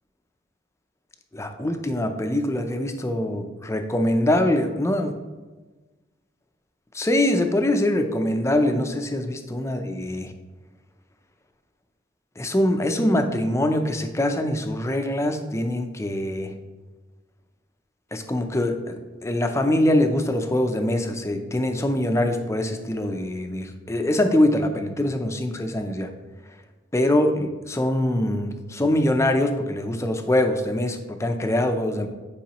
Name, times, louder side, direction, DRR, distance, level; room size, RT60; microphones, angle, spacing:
voice 1, 1.3-5.1 6.9-10.3 12.4-16.5 18.1-26.1 26.9-32.1, left 1 dB, 15° left, 6 dB, 0.5 m, -23 dB
10.0 x 4.7 x 3.0 m, 1.3 s
head